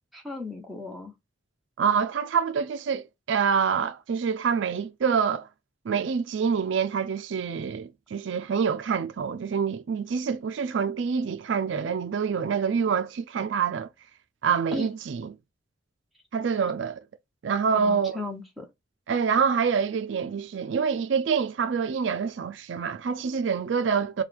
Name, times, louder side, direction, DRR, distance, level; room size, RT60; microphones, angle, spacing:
voice 1, 0.1-1.1 14.7-14.9 17.7-18.7, left 2 dB, ahead, 0.9 m, -36 dB
voice 2, 1.8-5.5 5.9-13.9 14.4-15.3 16.3-17.0 17.4-18.2 19.1-24.2, right 6 dB, 70° right, 0.4 m, -26 dB
4.5 x 2.3 x 3.3 m
head